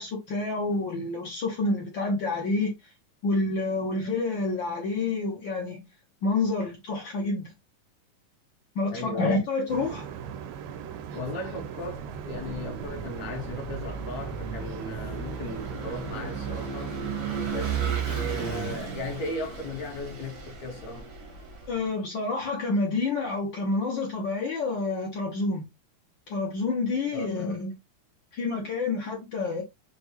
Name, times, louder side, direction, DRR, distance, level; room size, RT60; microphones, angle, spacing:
voice 1, 0.0-2.7 3.2-5.8 6.2-7.5 8.7-10.1 21.7-25.6 26.3-27.7 28.3-29.6, left 3 dB, 85° left, 1.0 m, -28 dB
voice 2, 8.9-9.4 11.1-17.0 17.5-21.1 27.1-27.6, left 2 dB, 65° left, 2.3 m, -37 dB
sound 1, 9.7-18.8, right 7 dB, 90° right, 2.3 m, -39 dB
Vehicle / Engine, 12.0-21.8, right 6 dB, 70° right, 0.7 m, -35 dB
6.0 x 2.4 x 2.9 m
omnidirectional pair, 3.7 m